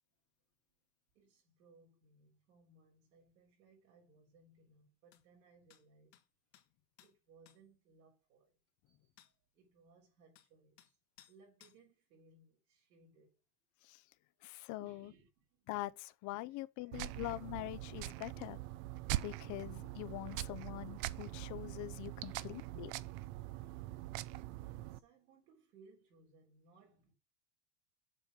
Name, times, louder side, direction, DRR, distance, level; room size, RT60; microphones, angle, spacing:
voice 1, 1.1-6.2 7.0-8.6 8.9-11.0 11.3-13.4 14.8-15.9 16.5-17.1 22.2-22.8 24.6-27.1, right 3 dB, 75° right, 3.9 m, -66 dB
sound 1, 5.1-5.2 5.7-5.8 6.1-6.3 6.5-6.7 7.0-7.1 7.5-7.6 9.2-9.3 10.4-10.5 10.8-10.9 11.2-11.4 11.6-11.8, left 12 dB, 75° left, 1.7 m, -63 dB
voice 2, 14.4-15.1 15.7-18.6 19.2-22.9, left 19 dB, 40° left, 0.6 m, -44 dB
sound 2, 16.9-25.0, right 16 dB, 55° right, 0.6 m, -43 dB
7.5 x 5.1 x 5.1 m
supercardioid pair, 120°, 48 cm